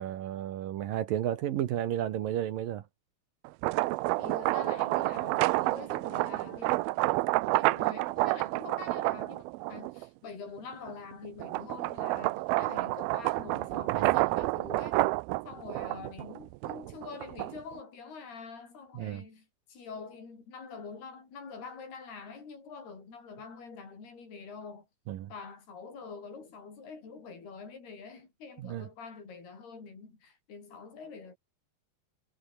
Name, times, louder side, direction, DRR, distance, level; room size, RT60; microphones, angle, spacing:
voice 1, 0.0-2.8 13.9-14.1 19.0-19.2 25.1-25.3 28.6-28.9, right 11 dB, 65° right, 2.6 m, -32 dB
sound 1, 3.5-10.1 10.6-17.8, right 21 dB, 85° right, 2.1 m, -29 dB
voice 2, 4.2-7.3 7.5-15.0 15.5-24.9 25.3-31.4, left 5 dB, 65° left, 9.4 m, -46 dB
omnidirectional pair, 4.9 m